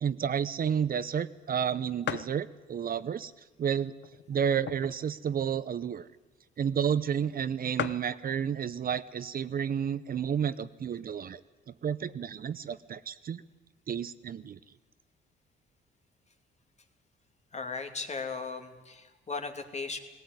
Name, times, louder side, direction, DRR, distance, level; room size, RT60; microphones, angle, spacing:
voice 1, 0.0-3.3 3.6-3.9 4.3-6.1 6.6-11.4 11.8-13.4 13.9-14.6, right 8 dB, 45° right, 14 dB, 0.7 m, -31 dB
sound 1, 1.1-1.2 1.5-1.6 2.0-2.4 3.1-3.2 3.9-5.1 5.5-5.6 5.8-6.0 6.8-6.9 7.1-7.2 7.4-7.5 7.8-8.2 9.1-9.4 9.9-10.0 10.2-11.0, left 10 dB, 65° left, 0.8 m, -37 dB
voice 2, 17.5-20.0, left 4 dB, 35° left, 6 dB, 2.5 m, -37 dB
18.0 x 17.0 x 9.5 m, 1.2 s
cardioid pair, 90°, 20 cm